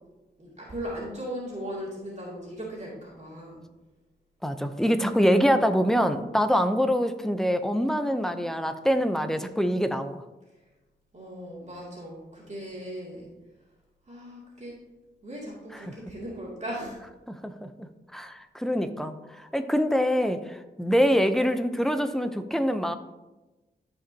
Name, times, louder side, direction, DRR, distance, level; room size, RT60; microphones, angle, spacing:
voice 1, 0.4-3.6 11.1-13.3 14.1-14.7 15.2-17.0, equal, 40° right, -6 dB, 2.6 m, -38 dB
voice 2, 4.4-10.2 15.7-15.8 17.3-22.9, equal, ahead, 8 dB, 0.6 m, -25 dB
13.0 x 5.2 x 2.8 m, 1.1 s
wide cardioid pair, 80°, 18 cm